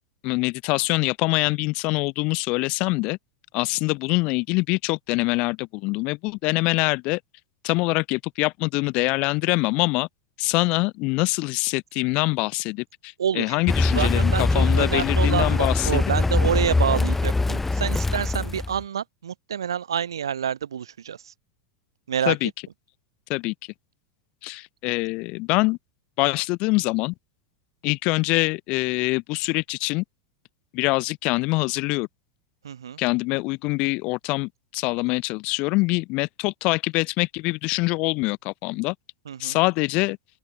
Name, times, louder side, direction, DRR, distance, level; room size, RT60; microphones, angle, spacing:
voice 1, 0.2-3.2 3.5-7.2 7.6-10.1 10.4-15.9 22.3-22.5 23.3-23.5 24.4-25.8 26.2-27.1 27.8-30.0 30.7-32.1 33.0-38.9 39.4-40.2, left 25 dB, 45° left, 3.9 m, -24 dB
voice 2, 13.2-13.5 13.9-21.3 22.1-22.4 32.6-33.0 39.2-39.6, right 8 dB, 75° right, 3.1 m, -28 dB
Car, 13.7-18.8, left 3 dB, 10° left, 0.5 m, -22 dB
open air
figure-of-eight pair, 90°, 2 cm